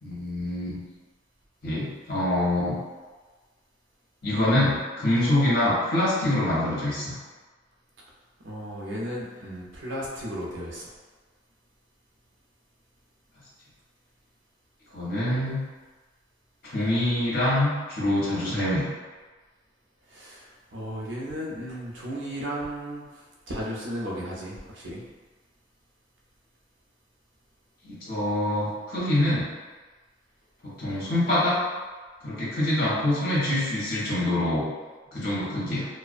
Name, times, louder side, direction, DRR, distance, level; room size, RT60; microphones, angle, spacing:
voice 1, 0.0-0.8 1.6-2.7 4.2-7.1 14.9-15.6 16.7-18.8 27.8-29.5 30.6-31.6 32.2-34.6 35.1-35.9, left 1 dB, 55° left, -8 dB, 0.9 m, -25 dB
voice 2, 8.4-10.9 20.1-25.0, equal, 90° right, -4 dB, 0.6 m, -35 dB
2.4 x 2.1 x 2.4 m, 1.4 s
head